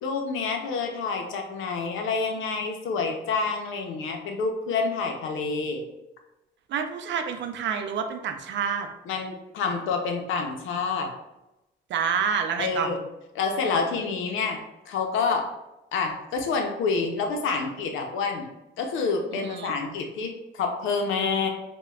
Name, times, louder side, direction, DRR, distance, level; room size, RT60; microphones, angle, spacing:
voice 1, 0.0-5.8 9.1-11.1 12.6-13.0 13.3-14.6 14.9-15.5 15.9-18.5 18.8-21.5, left 4 dB, 90° left, 3 dB, 0.6 m, -28 dB
voice 2, 6.7-8.9 11.9-12.9 19.3-19.7, right 7 dB, 65° right, 6 dB, 0.5 m, -28 dB
4.9 x 2.2 x 2.3 m, 0.94 s
cardioid pair, 90°, 20 cm